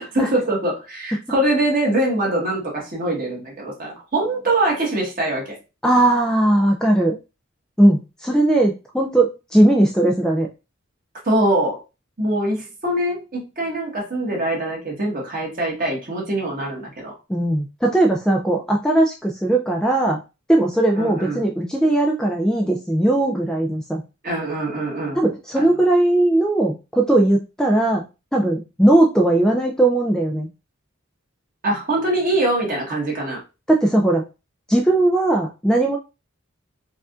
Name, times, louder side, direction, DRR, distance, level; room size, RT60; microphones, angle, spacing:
voice 1, 0.0-5.5 11.2-11.8 12.2-17.1 20.9-21.5 24.2-25.2 25.6-25.7 31.6-33.4, right 1 dB, 40° right, -3 dB, 1.5 m, -23 dB
voice 2, 5.8-7.2 7.8-10.5 17.3-20.2 20.5-24.0 25.2-28.0 28.3-30.5 33.7-34.2 34.7-36.0, right 1 dB, 5° left, 1 dB, 0.3 m, -18 dB
4.7 x 2.5 x 2.4 m, 0.28 s
head